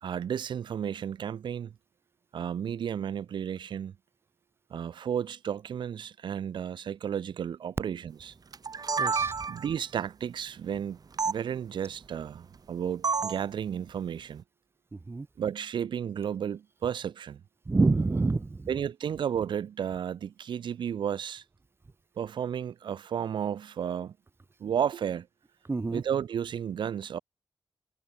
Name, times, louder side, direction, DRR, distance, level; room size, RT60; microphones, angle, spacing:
voice 1, 0.0-1.7 2.3-3.9 4.7-8.3 9.5-11.0 11.2-14.4 15.4-17.4 18.7-21.4 22.2-24.1 24.6-25.3 25.9-27.2, right 8 dB, 75° right, 1.3 m, -33 dB
sound 1, 8.5-9.8 11.2-11.4 13.0-13.5, right 5 dB, 50° right, 2.5 m, -29 dB
voice 2, 9.0-9.3 14.9-15.3 17.7-18.7 25.7-26.0, right 3 dB, 30° right, 1.0 m, -27 dB
cardioid pair, 55°, 8 cm